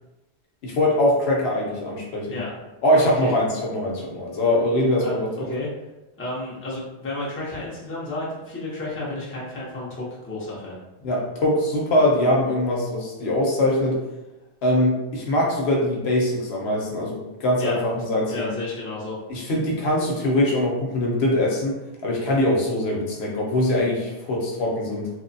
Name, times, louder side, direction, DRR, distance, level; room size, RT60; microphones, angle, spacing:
voice 1, 0.6-2.4 2.8-5.3 11.0-14.0 14.6-18.5 19.3-21.8 22.0-25.1, left 1 dB, 70° left, -2 dB, 0.9 m, -22 dB
voice 2, 3.0-3.3 5.0-5.7 6.2-10.8 17.6-17.8 18.3-19.2, left 2 dB, 15° left, -6 dB, 0.5 m, -32 dB
3.0 x 2.1 x 2.6 m, 1.0 s
omnidirectional pair, 1.2 m